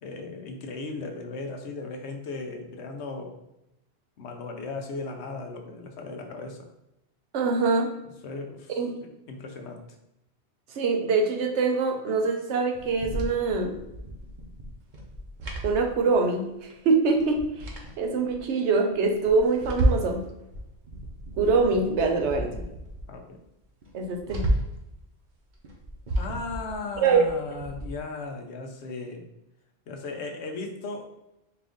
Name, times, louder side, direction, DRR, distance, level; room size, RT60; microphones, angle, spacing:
voice 1, 0.0-3.4 4.2-6.7 8.2-8.7 9.0-9.8 22.2-22.7 23.1-23.4 26.2-29.3 29.9-31.1, left 3 dB, 75° left, 4 dB, 0.9 m, -37 dB
voice 2, 7.3-7.9 8.8-8.9 10.8-13.8 15.6-17.7 18.0-20.2 21.4-22.5 23.9-24.5 27.0-27.2, right 4 dB, 85° right, 3 dB, 1.0 m, -24 dB
sound 1, 12.7-16.4 16.7-16.8 17.1-18.4 18.9-20.2 20.5-23.1 23.4-23.5 23.8-24.9 25.5-28.0, right 1 dB, 50° right, 0.8 m, -32 dB
4.5 x 2.5 x 3.5 m, 0.88 s
omnidirectional pair, 1.1 m